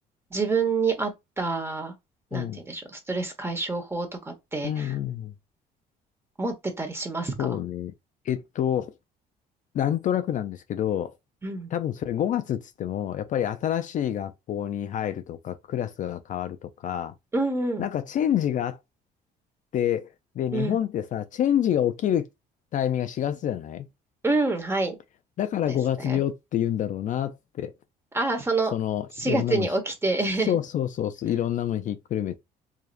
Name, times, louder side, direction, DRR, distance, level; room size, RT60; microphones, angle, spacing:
voice 1, 0.3-1.1 1.4-1.9 2.3-4.9 6.4-7.6 11.4-11.7 17.3-17.8 20.5-20.8 24.2-25.0 25.7-26.2 28.1-28.7 29.2-30.5, right 3 dB, 15° right, 1.3 m, -27 dB
voice 2, 4.6-5.3 7.4-7.9 8.2-8.9 9.7-11.1 11.7-17.1 17.8-18.8 19.7-20.1 20.4-22.3 22.7-23.9 25.4-27.7 28.7-29.7 30.4-32.4, left 10 dB, 50° left, 0.4 m, -27 dB
4.8 x 2.9 x 2.5 m
cardioid pair, 110°, 17 cm